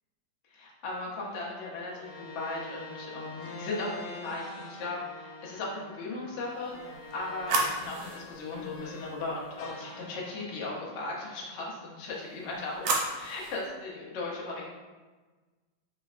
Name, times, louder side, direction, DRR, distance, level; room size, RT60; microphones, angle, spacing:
voice 1, 0.5-14.7, left 2 dB, 70° left, -4 dB, 0.6 m, -37 dB
sound 1, 1.8-9.2 9.6-12.0, left 2 dB, 90° left, 1.4 m, -46 dB
sound 2, 6.6-9.7 12.1-13.7, right 3 dB, 75° right, 1.2 m, -34 dB
3.3 x 3.1 x 2.4 m, 1.3 s
omnidirectional pair, 2.2 m